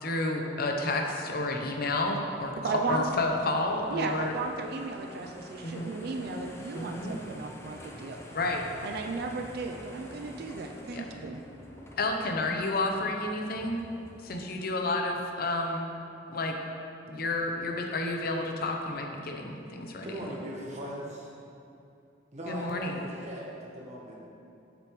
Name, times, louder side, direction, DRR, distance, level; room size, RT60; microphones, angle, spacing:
voice 1, 0.0-2.5 2.9-4.3 5.6-5.9 6.7-7.1 8.3-8.6 10.9-11.0 12.0-13.8 14.2-15.9 16.3-16.6 17.1-20.1 22.5-23.0, left 2 dB, 55° left, 3 dB, 0.7 m, -30 dB
sound 1, 1.8-14.5, equal, 15° left, 0.6 m, -48 dB
voice 2, 2.6-3.0 3.9-8.2 8.8-11.4, right 4 dB, 60° right, 3 dB, 0.4 m, -35 dB
voice 3, 20.0-21.3 22.3-24.2, equal, 40° right, -4 dB, 1.2 m, -39 dB
7.6 x 6.9 x 3.1 m, 2.6 s
head